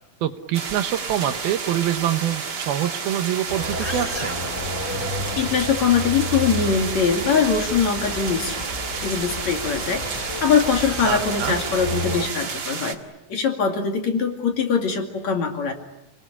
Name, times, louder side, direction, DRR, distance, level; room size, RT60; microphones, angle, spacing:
voice 1, 0.2-4.4 11.0-11.6, right 11 dB, 75° right, 9 dB, 2.9 m, -25 dB
sound 1, 0.5-12.9, right 5 dB, 45° right, 1.4 m, -31 dB
sound 2, 3.5-12.3, left 1 dB, 20° left, 4.0 m, -31 dB
voice 2, 5.4-8.6 9.0-13.0 13.3-15.7, left 6 dB, 50° left, 4 dB, 3.3 m, -22 dB
29.0 x 20.5 x 9.9 m, 0.95 s
omnidirectional pair, 4.5 m